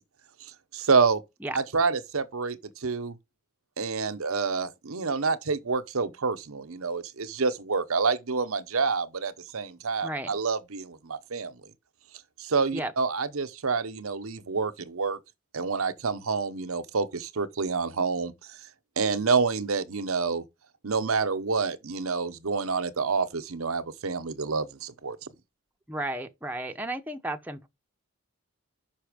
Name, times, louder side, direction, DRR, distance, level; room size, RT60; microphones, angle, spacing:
voice 1, 0.4-1.2 1.5-3.2 3.8-11.6 12.4-15.2 15.5-18.6 19.0-20.4 20.8-25.3, right 4 dB, 85° right, 0.9 m, -28 dB
voice 2, 10.0-10.3 12.7-12.9 25.9-27.7, right 1 dB, 10° right, 0.8 m, -33 dB
5.9 x 5.6 x 5.0 m
head